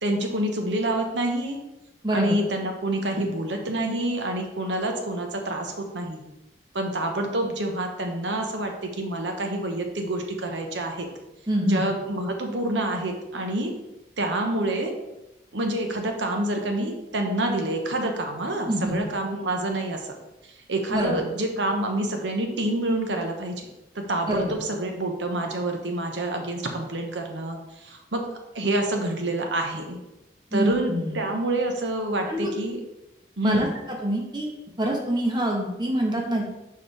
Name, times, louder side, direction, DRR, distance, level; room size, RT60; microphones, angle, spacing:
voice 1, 0.0-1.6 2.1-6.2 6.7-11.1 11.7-13.7 14.2-14.9 15.5-20.0 20.4-23.7 23.9-28.2 28.5-30.0 30.5-32.8 33.4-33.7, right 1 dB, 85° right, 3 dB, 1.1 m, -27 dB
voice 2, 2.0-2.4 11.5-11.8 18.7-19.0 20.9-21.2 24.3-24.5 30.5-31.1 32.3-32.5 33.4-33.7 34.0-34.5 34.8-36.5, right 1 dB, 25° right, 0 dB, 1.2 m, -25 dB
6.6 x 5.3 x 3.3 m, 0.95 s
head